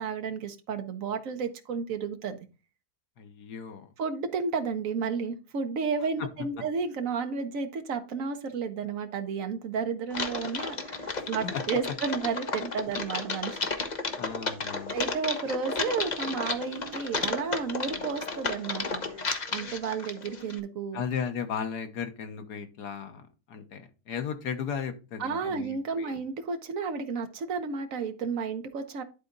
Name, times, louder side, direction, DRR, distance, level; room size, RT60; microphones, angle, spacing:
voice 1, 0.0-2.5 4.0-13.6 14.9-21.0 25.2-29.0, right 5 dB, 55° right, 6 dB, 1.4 m, -32 dB
voice 2, 3.2-3.9 11.1-11.6 14.2-14.9 20.9-26.2, left 7 dB, 80° left, 7 dB, 1.7 m, -36 dB
Typing, 10.1-20.6, left 3 dB, 35° left, 0.9 m, -33 dB
11.0 x 4.2 x 3.9 m, 0.31 s
omnidirectional pair, 1.7 m